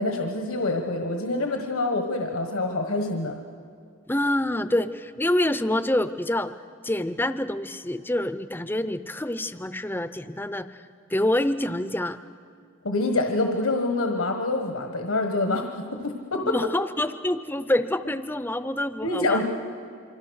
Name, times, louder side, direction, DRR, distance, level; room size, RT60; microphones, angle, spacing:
voice 1, 0.0-3.4 12.8-16.5 19.0-19.5, left 2 dB, 80° left, 4 dB, 1.4 m, -26 dB
voice 2, 4.1-6.5 6.8-12.2 16.4-19.5, left 1 dB, 10° left, 13 dB, 0.6 m, -26 dB
25.5 x 25.0 x 6.4 m, 2.2 s
head